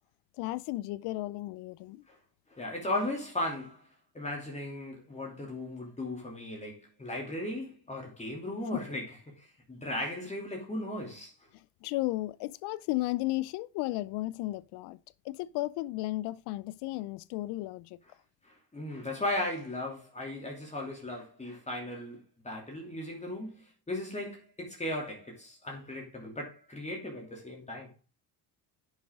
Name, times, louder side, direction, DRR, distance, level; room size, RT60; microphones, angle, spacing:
voice 1, 0.4-2.0 11.8-15.0 15.3-17.9, left 18 dB, 80° left, 0.6 m, -34 dB
voice 2, 2.5-3.9 4.1-11.3 18.4-27.9, left 1 dB, 15° left, 2.8 m, -37 dB
10.5 x 6.5 x 3.7 m
cardioid pair, 110°, 39 cm